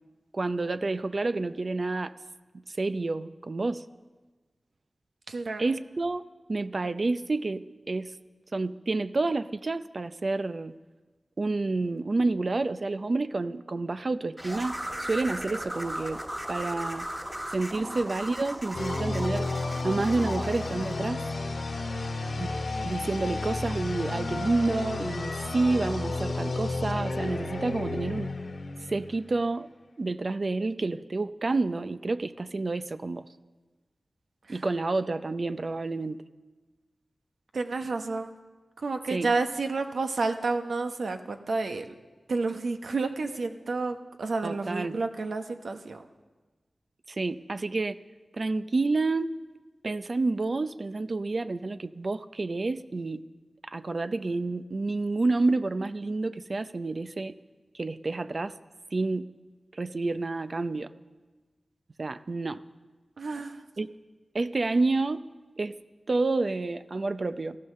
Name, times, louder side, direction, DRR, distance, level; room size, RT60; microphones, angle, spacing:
voice 1, 0.3-2.1 2.8-3.8 5.6-6.2 6.5-8.1 8.5-10.7 11.4-16.2 16.5-17.1 17.5-19.5 19.8-21.2 22.4-22.5 22.8-28.3 28.9-29.7 30.0-33.2 34.5-36.2 39.1-39.4 44.4-45.0 47.1-48.0 48.3-49.4 49.8-53.3 53.6-57.3 57.7-58.5 58.9-59.3 59.7-60.9 62.0-62.6 63.8-63.9 64.3-65.3 65.6-65.8 66.1-67.6, right 3 dB, 60° right, 11 dB, 0.6 m, -29 dB
voice 2, 5.3-5.6 17.8-18.0 37.5-38.3 38.8-41.8 42.3-46.0 63.2-63.6, right 3 dB, 85° right, 6 dB, 1.0 m, -30 dB
sound 1, 14.4-21.0, equal, 15° right, 2.1 m, -37 dB
sound 2, 18.7-29.4, left 2 dB, 80° left, 1.9 m, -32 dB
15.0 x 14.0 x 6.6 m, 1.3 s
cardioid pair, 45°, 0 cm